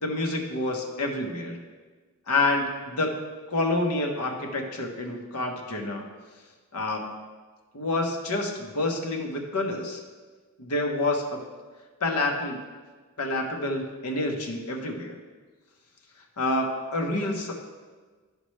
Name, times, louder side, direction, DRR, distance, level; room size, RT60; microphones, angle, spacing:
voice 1, 0.0-1.6 2.3-3.2 3.5-6.1 6.7-7.2 7.7-10.0 10.6-11.4 12.0-12.6 13.2-15.2 16.4-17.6, left 2 dB, 90° left, 2 dB, 1.2 m, -28 dB
12.5 x 5.0 x 3.2 m, 1.4 s
head